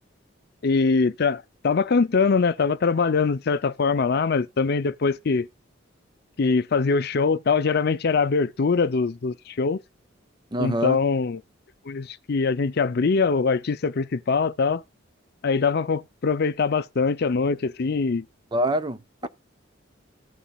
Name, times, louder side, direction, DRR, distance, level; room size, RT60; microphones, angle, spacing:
voice 1, 0.6-5.5 6.4-9.8 10.6-11.4 11.9-14.8 15.4-18.2, left 4 dB, 55° left, 0.5 m, -23 dB
voice 2, 10.5-11.0 18.5-19.3, right 1 dB, 20° right, 0.6 m, -25 dB
16.0 x 7.1 x 2.3 m
head